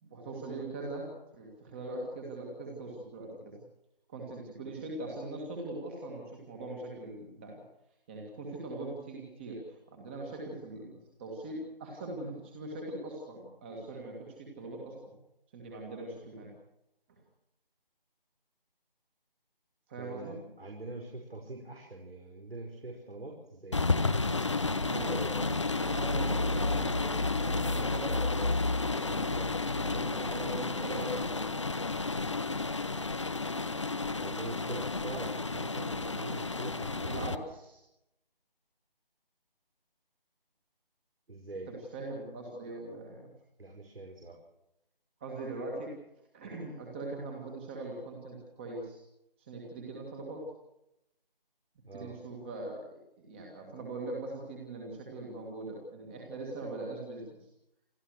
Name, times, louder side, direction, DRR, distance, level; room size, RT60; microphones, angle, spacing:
voice 1, 0.0-3.6 4.1-7.6 8.1-15.2 15.5-16.6 17.1-17.2 19.9-20.4 24.9-31.8 37.1-37.8 41.7-43.3 45.2-45.9 46.3-49.0 49.4-50.5 51.9-52.9 53.2-57.5, right 2 dB, 10° right, -1 dB, 2.1 m, -41 dB
voice 2, 20.0-23.9 34.2-37.2 41.3-41.7 43.6-44.4 51.9-52.1, right 2 dB, 85° right, 1 dB, 5.6 m, -43 dB
sound 1, 23.7-37.4, left 3 dB, 30° left, 0.8 m, -31 dB
29.0 x 14.0 x 6.5 m, 0.84 s
figure-of-eight pair, 165°, 29 cm